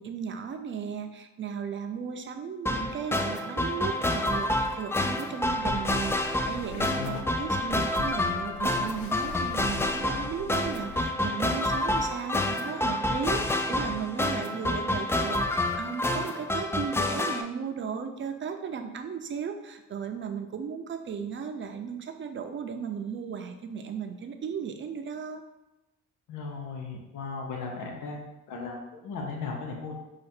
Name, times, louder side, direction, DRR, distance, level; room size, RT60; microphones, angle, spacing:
voice 1, 0.0-25.4, right 7 dB, 40° right, 6 dB, 0.6 m, -36 dB
sound 1, 2.7-17.4, left 1 dB, 10° left, 0.3 m, -28 dB
sound 2, 5.4-11.0, left 7 dB, 70° left, 0.5 m, -45 dB
voice 2, 6.9-7.3 26.3-28.2 28.5-29.9, left 4 dB, 85° left, 0 dB, 0.9 m, -36 dB
4.8 x 2.5 x 4.3 m, 0.99 s
cardioid pair, 90°, 30 cm